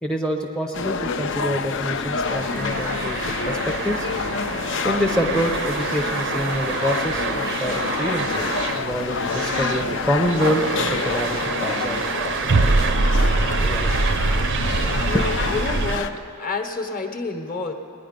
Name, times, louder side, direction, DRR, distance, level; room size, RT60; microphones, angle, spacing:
voice 1, 0.0-3.2 3.5-4.1 4.8-8.4 8.7-12.3 12.6-12.8 13.6-13.8 15.1-15.2, equal, 5° left, -1 dB, 0.6 m, -26 dB
sound 1, 0.7-16.1, left 5 dB, 55° left, 0.6 m, -28 dB
sound 2, 2.3-16.0, right 4 dB, 55° right, 0.6 m, -25 dB
voice 2, 15.0-17.7, left 3 dB, 40° left, 5 dB, 1.0 m, -29 dB
19.0 x 10.0 x 5.2 m, 2.7 s
head